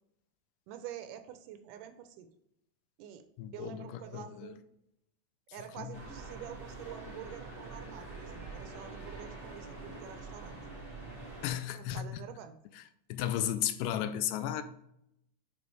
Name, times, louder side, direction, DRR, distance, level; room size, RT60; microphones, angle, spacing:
voice 1, 0.7-2.3 3.0-3.2 3.5-4.6 5.5-10.6 11.7-12.6, right 10 dB, 80° right, 2.1 m, -47 dB
voice 2, 3.4-4.6 5.8-5.9 11.4-12.2 12.8-12.9 13.1-14.6, left 11 dB, 85° left, 2.1 m, -34 dB
sound 1, 5.9-11.5, right 3 dB, 25° right, 1.2 m, -45 dB
5.3 x 5.1 x 4.6 m
omnidirectional pair, 3.8 m